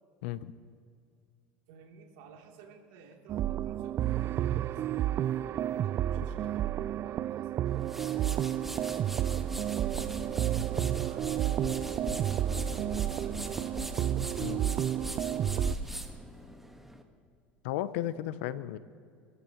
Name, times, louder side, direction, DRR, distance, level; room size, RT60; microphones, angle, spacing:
voice 1, 1.7-9.3 10.7-13.7 14.2-15.8 18.4-18.8, right 5 dB, 75° right, 0 dB, 3.4 m, -54 dB
sound 1, 3.3-15.8, right 11 dB, 40° right, 0.3 m, -31 dB
sound 2, 7.6-17.0, right 1 dB, 5° right, 1.6 m, -40 dB
voice 2, 17.6-18.8, left 13 dB, 80° left, 15 dB, 0.7 m, -34 dB
26.5 x 15.5 x 3.2 m, 2.3 s
supercardioid pair, 95°, 6 cm